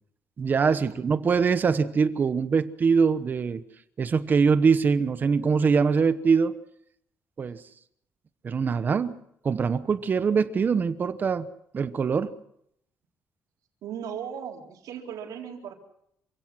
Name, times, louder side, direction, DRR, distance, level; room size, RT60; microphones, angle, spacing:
voice 1, 0.4-3.6 4.0-6.6 7.4-7.6 8.4-9.2 9.4-11.5 11.7-12.3, right 5 dB, 30° right, 1.0 m, -23 dB
voice 2, 13.8-15.8, right 8 dB, 85° right, 4.3 m, -37 dB
27.0 x 17.0 x 6.1 m
cardioid pair, 170°, 6 cm